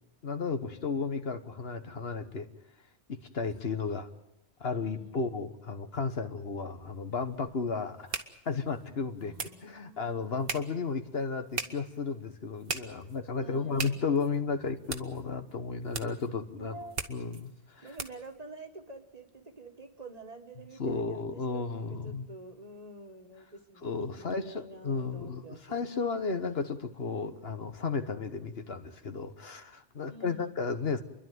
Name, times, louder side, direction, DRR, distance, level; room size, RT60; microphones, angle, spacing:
voice 1, 0.2-2.5 3.1-4.1 4.6-8.2 8.4-16.7 17.1-17.9 20.8-22.3 23.8-25.4 25.7-31.0, left 4 dB, 60° left, 8 dB, 1.4 m, -33 dB
voice 2, 4.9-5.3 9.2-10.5 13.4-14.0 16.6-17.0 17.8-25.8 30.1-30.6, right 2 dB, 35° right, 5 dB, 1.7 m, -48 dB
sound 1, 6.8-18.4, right 5 dB, 55° right, 1.4 m, -42 dB
29.5 x 11.5 x 9.4 m, 0.87 s
omnidirectional pair, 1.2 m